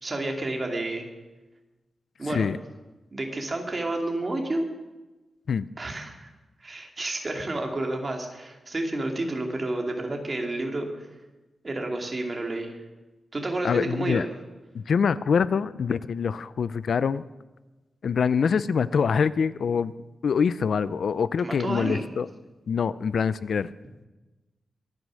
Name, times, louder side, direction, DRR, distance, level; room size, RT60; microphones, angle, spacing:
voice 1, 0.0-1.1 2.2-2.5 3.1-4.6 5.8-6.3 6.6-11.1 11.6-12.8 13.3-14.2 21.4-22.1, right 2 dB, 30° right, 2 dB, 2.6 m, -30 dB
voice 2, 13.6-14.3 14.7-17.2 18.0-19.9 20.2-22.3 22.7-23.7, left 6 dB, 65° left, 16 dB, 0.4 m, -25 dB
23.0 x 9.7 x 6.4 m, 1.1 s
wide cardioid pair, 145°, 0 cm